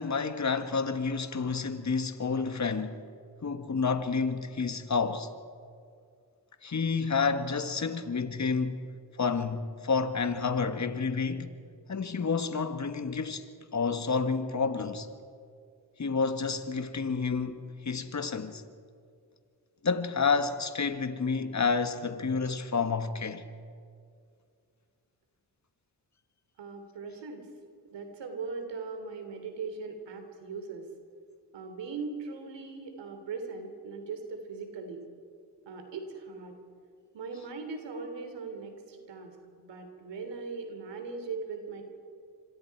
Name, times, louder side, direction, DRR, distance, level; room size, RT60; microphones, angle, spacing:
voice 1, 0.0-3.0 3.4-5.3 6.6-8.9 9.2-11.5 11.9-15.1 16.0-18.6 19.8-23.4, left 5 dB, 40° left, 1.7 m, -29 dB
voice 2, 26.6-27.5 27.9-30.9 31.5-35.0 35.6-36.6 37.1-41.8, right 4 dB, 80° right, 3.1 m, -39 dB
26.5 x 25.5 x 4.7 m
cardioid pair, 55°, 42 cm